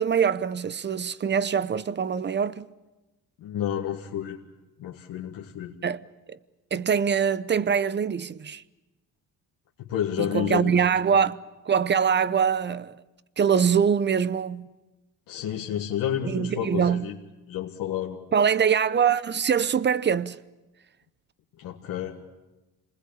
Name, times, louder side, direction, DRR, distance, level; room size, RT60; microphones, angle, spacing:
voice 1, 0.0-2.7 5.8-6.0 6.3-6.4 6.7-8.6 10.2-11.4 11.6-13.0 13.4-14.7 16.2-17.1 18.3-20.4, right 7 dB, 30° right, 0.8 m, -23 dB
voice 2, 3.4-4.4 4.8-5.7 9.8-10.7 15.3-17.2 17.5-18.2 21.6-22.2, left 10 dB, 75° left, 1.8 m, -30 dB
26.5 x 20.5 x 8.6 m
cardioid pair, 90°, 34 cm